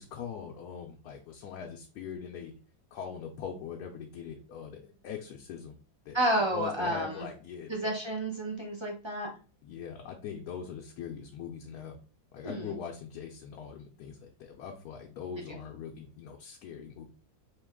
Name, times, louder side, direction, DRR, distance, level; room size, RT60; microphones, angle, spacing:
voice 1, 0.0-2.5 2.9-5.8 6.1-7.9 9.6-12.0 12.3-17.1, left 7 dB, 75° left, 1 dB, 1.1 m, -42 dB
voice 2, 6.1-7.3 7.7-9.3 12.4-12.7, right 1 dB, 30° right, -1 dB, 0.5 m, -30 dB
3.8 x 2.8 x 3.6 m, 0.37 s
omnidirectional pair, 1.7 m